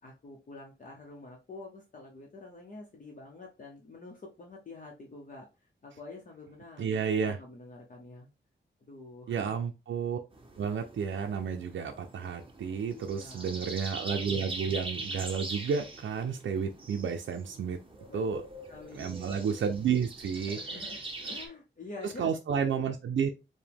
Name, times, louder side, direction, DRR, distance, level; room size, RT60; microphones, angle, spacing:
voice 1, 0.0-8.3 8.8-9.6 12.9-13.7 18.1-18.4 18.7-19.2 20.4-22.3, left 3 dB, 40° left, 0.8 m, -47 dB
voice 2, 6.8-7.4 9.3-10.2 10.6-17.8 18.1-18.4 18.9-20.9 22.0-23.3, right 6 dB, 75° right, 0.5 m, -31 dB
sound 1, 10.3-21.5, right 2 dB, 25° right, 1.0 m, -42 dB
4.8 x 2.2 x 3.4 m
wide cardioid pair, 145°, 20 cm